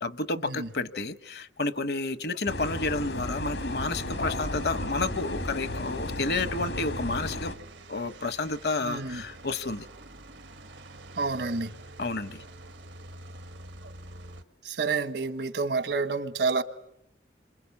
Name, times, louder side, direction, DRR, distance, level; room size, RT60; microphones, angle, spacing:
voice 1, 0.0-7.5 7.9-9.9 12.0-12.4, left 3 dB, 65° left, 1.0 m, -30 dB
sound 1, 2.5-7.5, left 1 dB, 85° left, 2.1 m, -34 dB
sound 2, 3.9-14.4, right 1 dB, 90° right, 1.9 m, -46 dB
voice 2, 8.8-9.2 11.2-11.7 14.6-16.6, right 4 dB, 70° right, 1.4 m, -29 dB
28.0 x 26.5 x 7.2 m
head